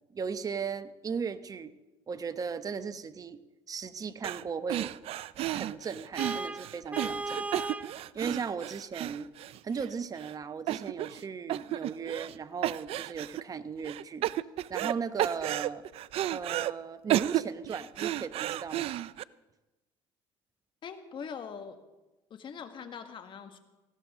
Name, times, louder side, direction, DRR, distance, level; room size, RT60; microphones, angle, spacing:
voice 1, 0.1-1.7 2.1-3.4 3.7-4.9 5.5-7.6 8.1-9.3 9.6-14.3 14.7-15.8 16.3-19.0, right 6 dB, 30° right, 12 dB, 0.9 m, -37 dB
sound 1, 4.2-4.4 4.7-9.9 10.2-10.3 10.7-11.2 11.5-12.4 12.6-13.4 13.8-14.9 15.2-16.7 17.1-19.2, right 14 dB, 60° right, 0.5 m, -32 dB
Vehicle horn car horn honking, 6.2-7.9, right 2 dB, 10° right, 0.6 m, -35 dB
voice 2, 20.8-21.8 22.3-23.6, left 6 dB, 45° left, 8 dB, 1.7 m, -42 dB
18.5 x 16.0 x 3.7 m, 1.1 s
supercardioid pair, 100°, 11 cm